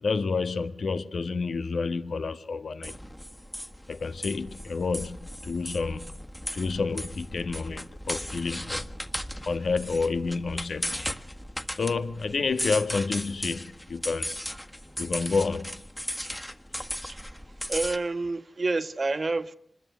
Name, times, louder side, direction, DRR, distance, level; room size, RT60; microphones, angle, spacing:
voice 1, 0.0-2.9 3.9-6.2 6.5-8.9 9.5-11.1 11.8-14.3 15.0-15.7, left 4 dB, 85° left, 1.5 m, -29 dB
sound 1, 2.8-18.0, equal, 10° left, 1.6 m, -36 dB
voice 2, 17.7-19.6, right 3 dB, 50° right, 1.5 m, -28 dB
26.5 x 21.0 x 9.5 m
wide cardioid pair, 90°, 0 cm